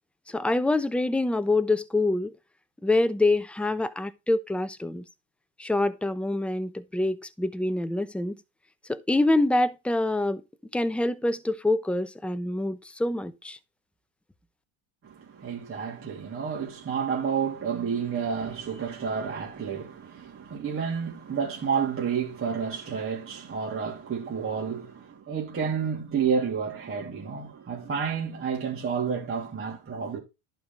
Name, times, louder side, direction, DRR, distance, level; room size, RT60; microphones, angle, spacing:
voice 1, 0.3-2.3 2.8-5.0 5.6-8.3 8.9-10.4 10.7-13.6, left 2 dB, 5° left, 0.8 m, -26 dB
voice 2, 15.0-30.2, right 6 dB, 30° right, 3.1 m, -30 dB
11.0 x 4.9 x 3.9 m
hypercardioid pair, 85°, 40 cm